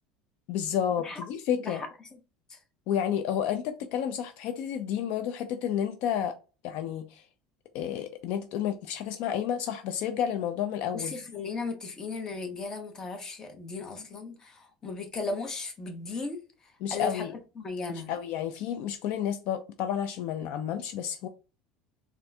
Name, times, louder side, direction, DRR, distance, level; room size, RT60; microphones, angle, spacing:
voice 1, 0.5-1.8 2.9-6.3 6.6-7.2 7.7-11.1 16.8-17.3 17.9-21.3, left 9 dB, 60° left, 0.4 m, -31 dB
voice 2, 10.9-16.4 16.9-17.3 17.6-18.1, left 3 dB, 20° left, 0.7 m, -36 dB
4.2 x 2.5 x 2.2 m
cardioid pair, 155°, 3 cm